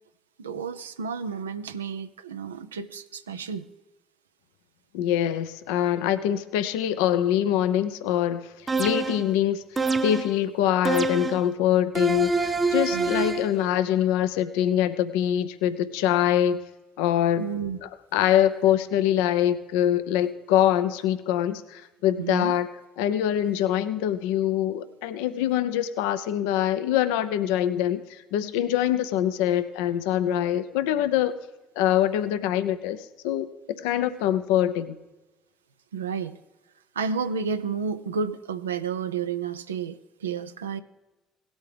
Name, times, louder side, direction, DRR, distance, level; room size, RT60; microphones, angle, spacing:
voice 1, 0.4-3.6 12.9-13.2 17.4-17.8 22.2-22.5 35.9-36.4 36.9-40.8, right 6 dB, 90° right, 10 dB, 0.5 m, -31 dB
voice 2, 4.9-8.5 8.8-9.6 10.0-16.6 17.0-17.5 17.8-22.7 23.0-31.4 31.8-34.9, left 11 dB, 75° left, 12 dB, 0.6 m, -24 dB
sound 1, 8.7-9.3 9.8-10.4 10.9-11.5 12.0-13.5, right 4 dB, 25° right, 0.8 m, -26 dB
17.5 x 8.1 x 3.4 m, 1.1 s
hypercardioid pair, 55°, 0 cm